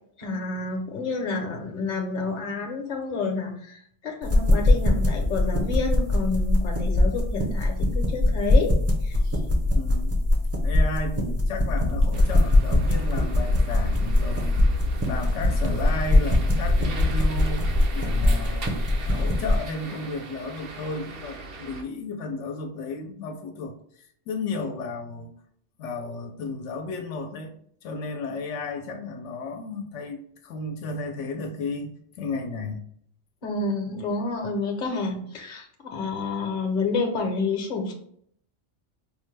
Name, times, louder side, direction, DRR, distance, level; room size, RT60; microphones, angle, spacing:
voice 1, 0.2-8.8 9.0-9.3 33.4-37.9, left 3 dB, 50° left, 3 dB, 0.9 m, -29 dB
sound 1, 4.2-19.6, left 1 dB, 15° right, 0.5 m, -22 dB
voice 2, 9.7-10.2 10.6-14.7 15.0-17.7 17.9-18.7 19.0-25.3 25.8-27.5 27.8-32.8, left 3 dB, 85° left, 4 dB, 0.9 m, -33 dB
sound 2, 11.8-17.9, left 1 dB, 85° right, 1.0 m, -33 dB
sound 3, 12.1-21.8, right 4 dB, 60° right, 0.8 m, -40 dB
5.0 x 2.1 x 3.2 m, 0.64 s
omnidirectional pair, 1.2 m